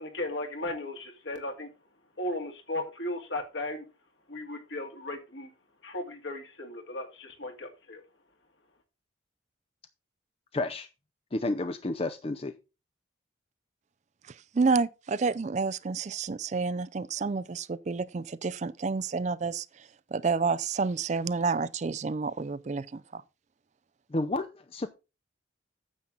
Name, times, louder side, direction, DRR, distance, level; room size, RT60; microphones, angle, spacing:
voice 1, 0.0-1.7 2.2-3.8 4.3-5.5 5.8-8.0, left 1 dB, 70° left, 2.4 m, -36 dB
voice 2, 10.5-10.9 11.3-12.5 24.1-24.9, left 2 dB, 30° left, 0.5 m, -31 dB
voice 3, 14.5-19.7 20.1-23.2, right 4 dB, 35° right, 0.4 m, -29 dB
9.6 x 7.4 x 3.9 m
head